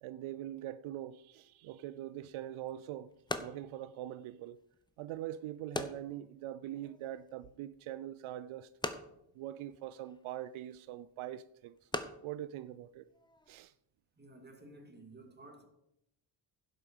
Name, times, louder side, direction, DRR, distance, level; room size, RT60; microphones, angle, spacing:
voice 1, 0.0-4.6 5.0-8.7 9.4-11.9 12.2-13.1 13.5-13.7, right 12 dB, 80° right, 0.5 m, -43 dB
sound 1, 2.2-13.6, left 2 dB, 10° left, 0.8 m, -45 dB
voice 2, 14.2-15.6, right 2 dB, 20° right, 2.3 m, -54 dB
11.0 x 8.1 x 5.4 m
cardioid pair, 110°, 48 cm